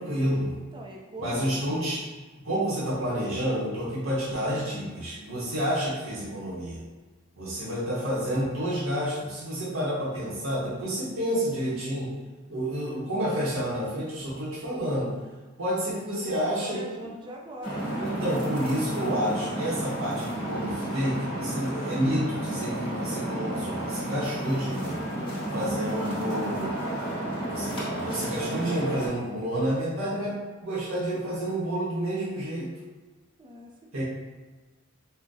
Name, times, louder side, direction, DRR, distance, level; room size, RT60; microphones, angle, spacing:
voice 1, 0.0-0.5 1.2-2.0 2.4-6.8 7.4-12.1 12.5-15.1 15.6-16.8 18.0-25.0 25.5-26.7 27.5-32.7 33.9-34.0, equal, 75° right, -7 dB, 0.8 m, -29 dB
voice 2, 0.7-1.9 15.9-18.0 25.2-25.5 33.4-34.0, equal, 25° right, 0 dB, 0.4 m, -42 dB
sound 1, 17.6-29.1, right 1 dB, 25° left, 1.0 m, -32 dB
3.6 x 2.0 x 2.6 m, 1.3 s
head